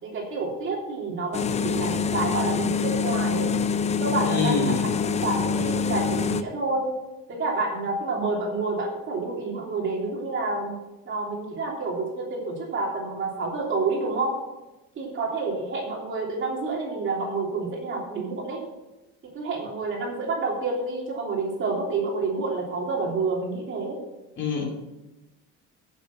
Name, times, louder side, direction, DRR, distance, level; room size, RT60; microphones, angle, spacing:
voice 1, 0.0-3.5 4.0-4.9 5.2-6.9 7.3-10.7 11.0-14.4 14.9-18.6 19.3-24.0, right 3 dB, 40° right, -1 dB, 3.1 m, -29 dB
sound 1, 1.3-6.4, left 5 dB, 20° left, 0.5 m, -25 dB
voice 2, 4.2-4.9 24.4-24.6, left 5 dB, 40° left, 0 dB, 2.6 m, -26 dB
10.5 x 7.3 x 6.0 m, 1.0 s
cardioid pair, 140°, 30 cm